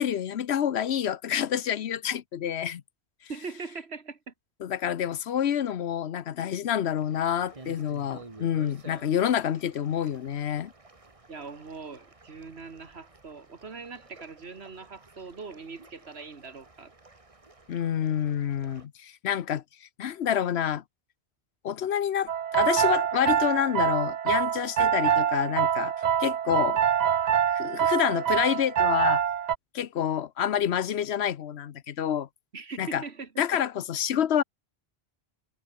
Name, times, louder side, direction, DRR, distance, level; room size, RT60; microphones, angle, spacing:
voice 1, 0.0-2.8 4.6-10.7 17.7-19.6 20.0-20.8 21.6-25.9 26.2-26.8 27.5-29.2 29.7-32.3 32.8-33.0 33.4-34.4, left 9 dB, 80° left, 1.1 m, -28 dB
voice 2, 3.3-4.3 11.3-16.9 32.5-33.6, right 4 dB, 75° right, 2.2 m, -41 dB
sound 1, 7.0-18.9, right 2 dB, 30° right, 1.9 m, -52 dB
sound 2, 22.3-29.6, right 9 dB, 50° right, 0.6 m, -25 dB
omnidirectional pair, 1.1 m